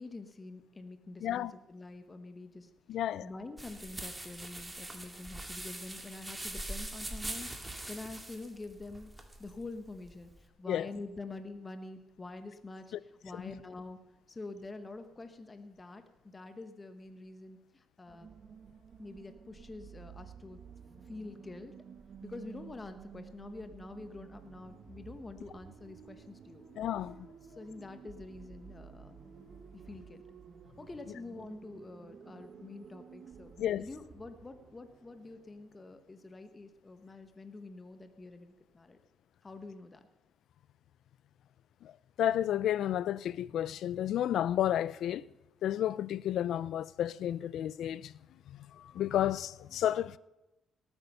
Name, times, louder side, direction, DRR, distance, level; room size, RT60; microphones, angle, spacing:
voice 1, 0.0-14.0 14.3-18.3 19.0-20.6 21.0-21.7 22.2-26.7 27.4-29.2 29.7-30.2 30.8-33.5 33.8-39.0 39.4-40.0, left 3 dB, 25° left, 1.1 m, -47 dB
voice 2, 2.9-3.3 10.7-10.9 12.9-13.0 13.3-13.4 26.8-27.3 33.6-33.8 41.8-41.9 42.2-45.2 45.6-48.1 48.5-50.2, left 11 dB, 75° left, 0.4 m, -31 dB
sound 1, 3.6-10.4, right 1 dB, 15° right, 2.0 m, -43 dB
sound 2, 18.1-36.3, right 7 dB, 55° right, 0.9 m, -53 dB
18.0 x 9.0 x 5.5 m
cardioid pair, 90°, 0 cm